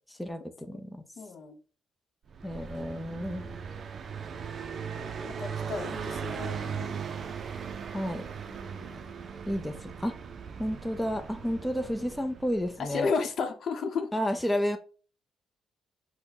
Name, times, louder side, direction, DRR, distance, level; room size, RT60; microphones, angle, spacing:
voice 1, 0.1-1.0 2.4-3.5 7.9-8.3 9.5-10.2 10.6-13.1 14.1-14.8, equal, 10° left, 0.6 m, -31 dB
voice 2, 1.2-1.6 3.2-3.7 4.9-7.0 8.5-9.1 12.8-14.1, left 4 dB, 60° left, 0.8 m, -34 dB
Car passing by, 2.3-12.9, right 6 dB, 50° right, 0.5 m, -38 dB
5.7 x 2.1 x 4.0 m
cardioid pair, 90°, 0 cm